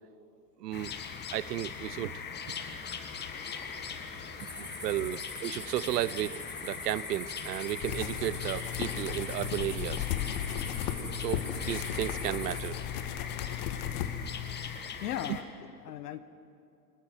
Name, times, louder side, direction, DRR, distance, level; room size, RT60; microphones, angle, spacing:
voice 1, 0.6-0.9 1.3-2.3 4.4-10.1 10.9-12.8, right 14 dB, 75° right, 20 dB, 0.7 m, -34 dB
sound 1, 0.7-15.4, left 6 dB, 20° left, 1.6 m, -41 dB
voice 2, 4.0-4.6 5.1-5.2 15.0-16.2, left 11 dB, 70° left, 13 dB, 1.3 m, -39 dB
sound 2, 4.4-12.7, left 1 dB, 5° left, 5.4 m, -44 dB
sound 3, 7.8-14.8, left 10 dB, 50° left, 1.6 m, -35 dB
22.0 x 20.0 x 6.0 m, 2.6 s
hypercardioid pair, 115°, 49 cm